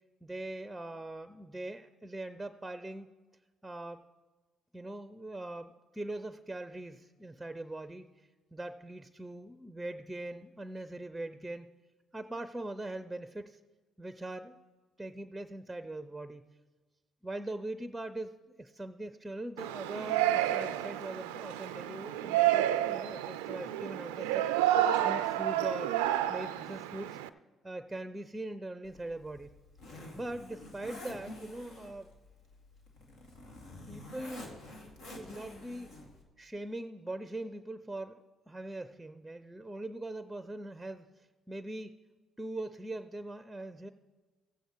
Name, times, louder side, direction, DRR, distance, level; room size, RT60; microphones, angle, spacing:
voice 1, 0.2-3.1 3.6-4.0 4.7-8.1 8.5-11.7 12.1-13.6 14.0-14.6 15.0-16.5 17.2-24.5 24.9-25.9 26.3-27.2 27.6-29.6 30.1-32.1 33.9-34.5 35.1-36.0 36.4-41.9 42.4-43.9, right 2 dB, 10° right, 11 dB, 0.6 m, -41 dB
Yell, 19.6-27.3, right 12 dB, 85° right, 0.3 m, -30 dB
Zipper (clothing), 28.8-36.2, left 1 dB, 70° left, 2.1 m, -49 dB
15.5 x 8.1 x 4.6 m, 1.3 s
hypercardioid pair, 50°, 0 cm